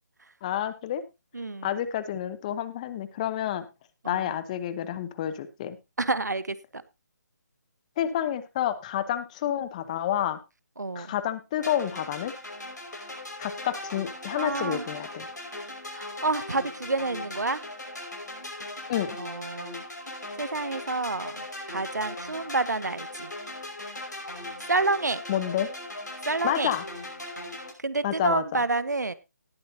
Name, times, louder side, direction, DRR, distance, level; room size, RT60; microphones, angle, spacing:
voice 1, 0.4-1.0 1.6-3.6 4.1-5.8 8.0-10.4 10.9-12.3 13.4-15.3 18.9-19.2 25.3-25.7 26.4-26.8 28.0-28.6, left 11 dB, 25° left, 14 dB, 0.9 m, -29 dB
voice 2, 1.3-1.8 4.0-4.3 6.0-6.8 10.8-11.1 14.4-14.9 15.9-17.6 19.2-19.8 20.4-23.3 24.4-25.2 26.3-26.7 27.8-29.1, right 3 dB, 75° right, 16 dB, 1.0 m, -29 dB
sound 1, 11.6-27.7, left 1 dB, 75° left, 5.4 m, -39 dB
19.0 x 8.0 x 2.8 m, 0.25 s
figure-of-eight pair, 150°, 9 cm